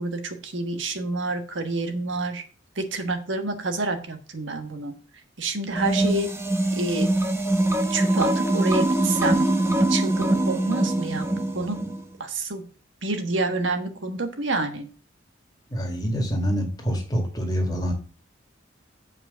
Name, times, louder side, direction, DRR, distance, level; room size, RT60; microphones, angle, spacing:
voice 1, 0.0-2.4 2.8-4.9 5.4-6.3 6.8-7.1 7.9-9.5 9.9-11.3 11.5-11.8 12.2-12.6 13.0-14.9, right 3 dB, 70° right, 7 dB, 1.3 m, -28 dB
sound 1, 5.7-12.0, right 1 dB, 15° right, 0.9 m, -23 dB
voice 2, 15.7-17.9, equal, 20° left, 2 dB, 2.0 m, -26 dB
7.4 x 5.2 x 6.7 m, 0.36 s
head